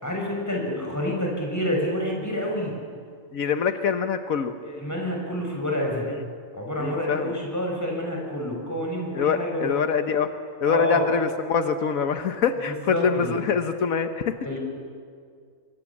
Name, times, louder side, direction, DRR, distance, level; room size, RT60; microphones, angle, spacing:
voice 1, 0.0-2.7 4.6-6.1 6.5-9.7 10.7-11.0 12.7-13.4 14.4-14.6, left 1 dB, 10° left, -1 dB, 6.2 m, -28 dB
voice 2, 3.3-4.6 6.1-6.2 6.8-7.4 9.1-10.3 10.6-14.6, left 6 dB, 85° left, 8 dB, 1.5 m, -25 dB
26.5 x 23.0 x 7.3 m, 2.2 s
omnidirectional pair, 1.4 m